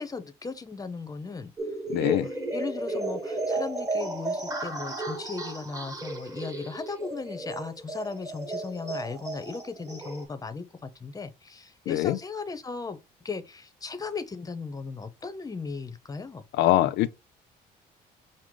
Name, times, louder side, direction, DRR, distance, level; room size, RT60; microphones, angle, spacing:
voice 1, 0.0-1.5 2.0-16.4, left 4 dB, 20° left, 0.7 m, -37 dB
sound 1, 1.6-10.2, right 2 dB, 20° right, 1.2 m, -34 dB
voice 2, 1.9-2.2 11.9-12.2 16.6-17.1, left 14 dB, 80° left, 0.5 m, -23 dB
6.2 x 2.1 x 3.7 m
cardioid pair, 110°, 17 cm